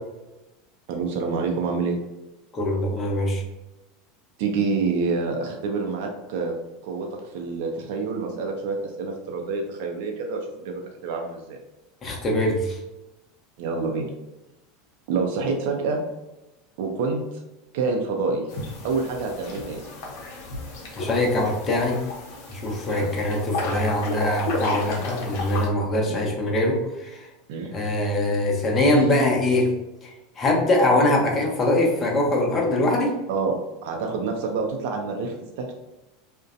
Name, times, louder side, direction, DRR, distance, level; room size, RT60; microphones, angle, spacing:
voice 1, 0.9-2.0 4.4-6.5 6.8-11.6 13.6-14.1 15.1-16.0 16.8-17.2 17.7-18.4 18.8-19.8 22.9-23.1 27.5-27.7 28.9-29.0 33.3-33.5 33.8-35.7, right 4 dB, 70° right, 2 dB, 0.4 m, -27 dB
voice 2, 2.5-3.4 12.0-12.8 21.0-22.0 22.5-27.3 27.7-29.7 30.0-30.1 30.4-33.1, left 1 dB, 30° left, -1 dB, 0.8 m, -22 dB
sound 1, 18.5-25.7, left 2 dB, 70° left, 0.7 m, -33 dB
2.5 x 2.1 x 2.5 m, 1.0 s
hypercardioid pair, 100°, 0 cm